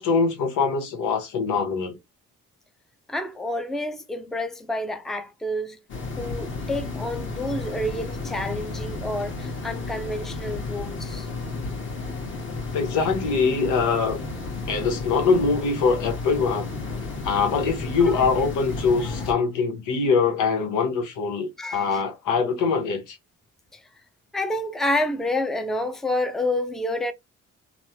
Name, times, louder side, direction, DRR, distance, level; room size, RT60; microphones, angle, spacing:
voice 1, 0.0-2.0 12.7-14.2 14.7-16.7 17.2-23.2, left 5 dB, 85° left, 1.0 m, -23 dB
voice 2, 3.1-5.8 6.2-11.3 18.1-18.3 19.0-19.3 21.6-22.0 24.3-27.1, left 1 dB, ahead, 0.5 m, -29 dB
sound 1, 5.9-19.3, left 3 dB, 40° left, 1.1 m, -32 dB
3.1 x 2.0 x 2.8 m
cardioid pair, 90°, 30 cm